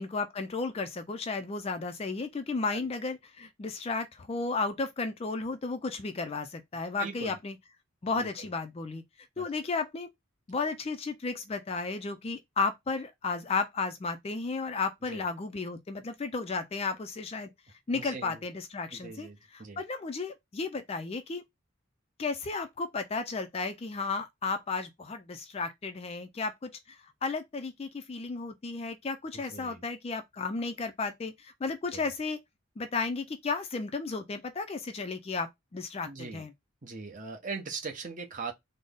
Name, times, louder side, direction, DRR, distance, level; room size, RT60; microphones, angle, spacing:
voice 1, 0.0-7.6 8.0-9.0 9.4-10.1 10.5-17.5 17.9-21.4 22.2-32.4 32.8-36.5, left 4 dB, 30° left, 0.3 m, -34 dB
voice 2, 7.0-7.4 8.2-8.3 9.4-9.5 15.1-15.2 17.9-18.4 18.9-19.8 29.3-29.8 31.9-32.1 36.0-36.5 36.8-38.5, right 4 dB, 35° right, 0.8 m, -40 dB
3.9 x 2.0 x 3.5 m
head